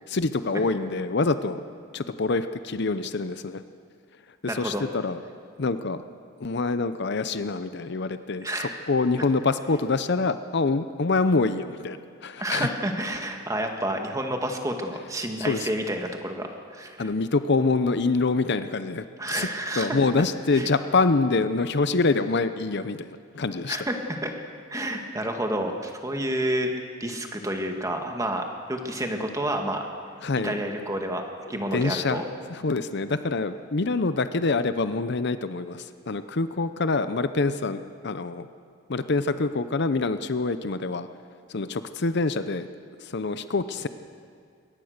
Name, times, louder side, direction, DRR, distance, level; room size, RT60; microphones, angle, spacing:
voice 1, 0.1-1.6 1.9-3.6 4.4-5.2 5.6-6.0 6.4-12.0 12.2-12.7 15.5-15.7 17.0-19.5 19.8-23.8 30.2-30.6 31.7-32.2 32.5-38.5 38.9-41.1 41.5-42.7 43.0-43.9, left 3 dB, 55° left, 11 dB, 0.7 m, -25 dB
voice 2, 4.5-4.8 8.4-8.7 12.4-16.5 16.7-17.1 19.2-20.0 20.5-20.7 23.7-24.3 24.7-26.7 27.0-29.8 30.4-31.2 31.5-32.2, right 1 dB, 15° right, 3 dB, 1.8 m, -29 dB
22.5 x 18.0 x 6.6 m, 2.2 s
head